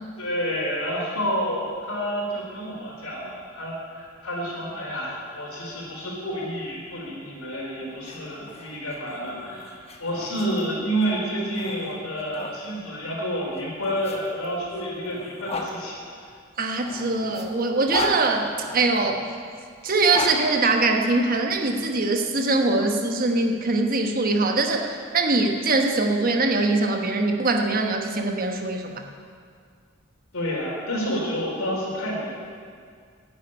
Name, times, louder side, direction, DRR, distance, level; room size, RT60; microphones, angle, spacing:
voice 1, 0.2-16.0 30.3-32.3, equal, 85° left, -3 dB, 3.8 m, -29 dB
sound 1, 7.9-12.6 13.5-15.7 16.6-19.0 19.8-21.4, left 3 dB, 30° left, 1.2 m, -36 dB
voice 2, 16.6-19.3 19.8-28.9, right 3 dB, 45° right, 4 dB, 1.1 m, -22 dB
11.0 x 7.5 x 9.7 m, 2.1 s
head